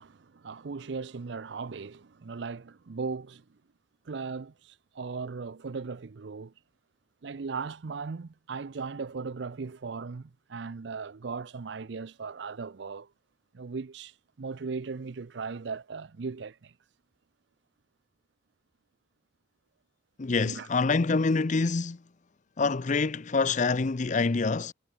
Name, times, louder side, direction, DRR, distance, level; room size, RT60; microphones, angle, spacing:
voice 1, 0.0-3.4 4.1-6.5 7.2-13.1 13.5-16.7 20.4-20.7, right 4 dB, 60° right, 0.5 m, -38 dB
voice 2, 20.2-22.0 22.6-24.7, left 4 dB, 40° left, 0.5 m, -26 dB
head